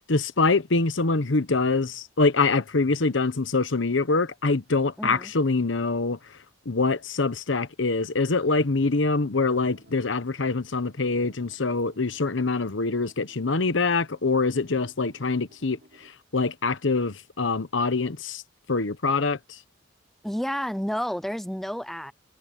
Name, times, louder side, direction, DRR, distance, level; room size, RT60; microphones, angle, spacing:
voice 1, 0.1-6.2 6.7-18.4 18.7-19.6, left 3 dB, 75° left, 1.0 m, -24 dB
voice 2, 5.0-5.3 20.2-22.1, equal, ahead, 0.5 m, -30 dB
sound 1, 9.0-16.1, right 1 dB, 50° right, 6.9 m, -58 dB
head